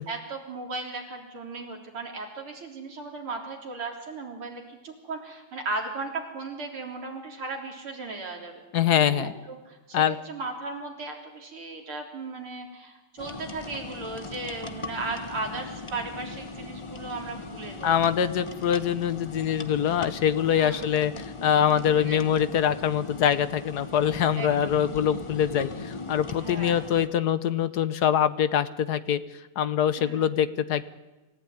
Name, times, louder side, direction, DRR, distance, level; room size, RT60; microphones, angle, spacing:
voice 1, 0.1-8.6 9.1-18.0 20.6-20.9 21.7-22.2 24.4-24.7 26.4-26.8 30.0-30.3, right 3 dB, 80° right, 1 dB, 4.5 m, -36 dB
voice 2, 8.7-9.3 9.9-10.2 17.8-29.2 29.6-30.9, left 9 dB, 60° left, 13 dB, 1.3 m, -24 dB
sound 1, 13.2-27.1, left 3 dB, 30° left, 0.5 m, -39 dB
27.0 x 15.5 x 9.6 m, 1.1 s
omnidirectional pair, 2.3 m